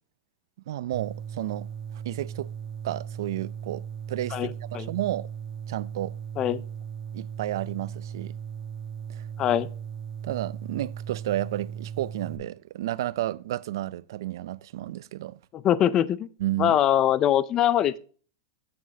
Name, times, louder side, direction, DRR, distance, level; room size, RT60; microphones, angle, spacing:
voice 1, 0.7-1.7 1.9-2.5 2.8-5.3 5.7-6.1 7.1-8.3 9.1-9.2 10.2-15.4 16.4-16.8, right 14 dB, 65° right, 0.4 m, -32 dB
sound 1, 0.9-12.4, right 8 dB, 20° right, 1.1 m, -37 dB
voice 2, 4.3-4.9 6.4-6.6 9.4-9.7 15.5-16.3 16.6-18.0, left 11 dB, 25° left, 0.4 m, -23 dB
8.5 x 7.4 x 2.8 m
supercardioid pair, 165°, 2 cm